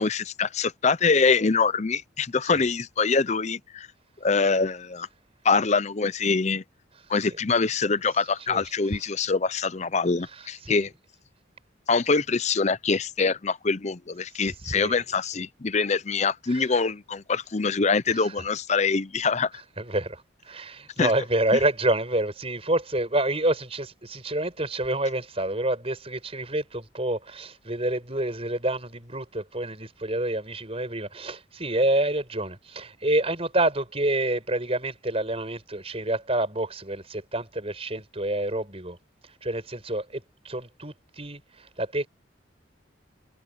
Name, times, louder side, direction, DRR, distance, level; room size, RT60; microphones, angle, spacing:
voice 1, 0.0-3.9 4.2-5.1 5.4-6.6 7.1-10.9 11.9-19.5 21.0-21.1, left 4 dB, 35° left, 0.6 m, -24 dB
voice 2, 10.3-10.9 14.5-14.9 15.3-15.4 16.5-16.7 18.1-18.3 19.8-39.0 39.2-42.1, right 1 dB, 30° right, 6.1 m, -28 dB
head